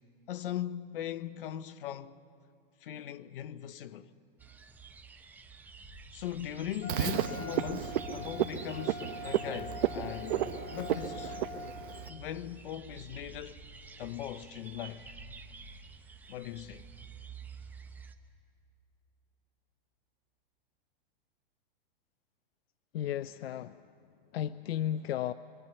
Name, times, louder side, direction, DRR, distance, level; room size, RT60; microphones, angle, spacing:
voice 1, 0.3-2.2 2.8-4.1 6.1-11.4 12.1-13.6 14.0-15.1 16.3-16.9, left 11 dB, 65° left, 1.0 m, -40 dB
sound 1, 4.4-18.1, right 5 dB, 5° right, 0.7 m, -49 dB
Wind instrument woodwind instrument, 6.8-12.1, left 3 dB, 25° left, 3.6 m, -44 dB
Frog, 6.9-12.1, right 10 dB, 60° right, 1.1 m, -33 dB
voice 2, 22.9-23.8 24.3-25.3, left 11 dB, 85° left, 0.6 m, -33 dB
26.5 x 23.5 x 7.0 m
supercardioid pair, 155°, 29 cm